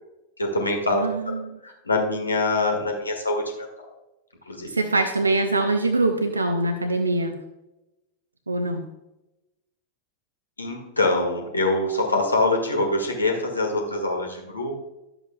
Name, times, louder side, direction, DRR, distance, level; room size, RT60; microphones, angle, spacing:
voice 1, 0.4-1.0 1.6-3.7 4.5-4.7 10.6-14.8, left 2 dB, 80° left, 1 dB, 1.8 m, -24 dB
voice 2, 0.9-1.6 4.6-7.4 8.5-8.9, right 2 dB, 80° right, 6 dB, 0.7 m, -23 dB
12.0 x 7.9 x 2.3 m, 0.96 s
figure-of-eight pair, 90°, 0 cm